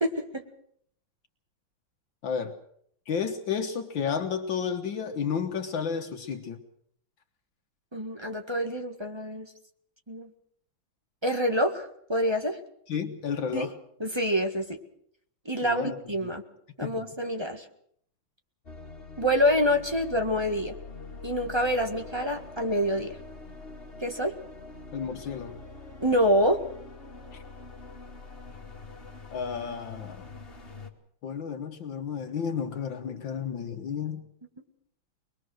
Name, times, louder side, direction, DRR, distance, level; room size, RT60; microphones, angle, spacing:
voice 1, 0.0-0.4 7.9-9.5 10.1-10.3 11.2-12.6 13.5-13.7 14.0-14.7 15.4-16.4 16.8-17.6 19.2-20.7 21.2-23.1 24.0-24.3 26.0-26.6, equal, 15° right, 5 dB, 1.5 m, -26 dB
voice 2, 2.2-2.5 3.1-6.6 12.9-13.7 15.6-16.0 16.2-16.3 16.8-17.0 24.9-25.6 29.3-30.3 31.2-34.2, left 6 dB, 70° left, 4 dB, 1.9 m, -32 dB
sound 1, 18.7-30.9, left 3 dB, 30° left, 2.5 m, -44 dB
23.0 x 21.5 x 6.4 m, 0.66 s
omnidirectional pair, 2.2 m